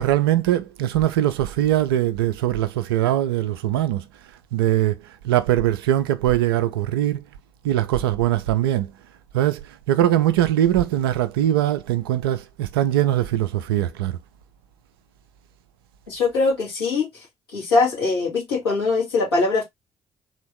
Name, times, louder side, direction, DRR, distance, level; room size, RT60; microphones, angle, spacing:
voice 1, 0.0-4.0 4.5-5.0 5.2-7.2 7.6-8.9 9.3-14.2, right 12 dB, 75° right, 0.5 m, -21 dB
voice 2, 16.1-17.1 17.5-19.6, left 3 dB, 85° left, 3.0 m, -21 dB
4.4 x 3.5 x 3.0 m
figure-of-eight pair, 45°, 12 cm